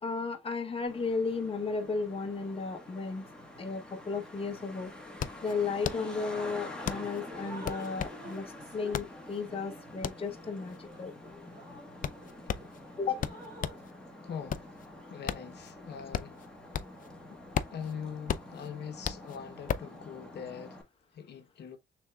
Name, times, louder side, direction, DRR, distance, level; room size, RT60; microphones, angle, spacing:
voice 1, 0.0-3.3 3.6-4.9 5.4-11.1 13.0-13.2, left 4 dB, 30° left, 1.0 m, -34 dB
Traffic noise roadway noise, 0.9-20.8, left 1 dB, 5° left, 1.5 m, -47 dB
sound 1, 4.2-4.3 4.6-13.9 14.3-17.1 17.4-20.0, left 9 dB, 45° left, 0.4 m, -36 dB
Drip, 6.7-6.9 7.3-12.7 13.1-13.8, right 2 dB, 25° right, 2.9 m, -50 dB
voice 2, 14.2-14.8 15.1-16.6 17.3-17.4 17.7-20.8 21.1-21.8, left 7 dB, 65° left, 0.9 m, -42 dB
6.1 x 3.5 x 2.3 m
cardioid pair, 110°, 19 cm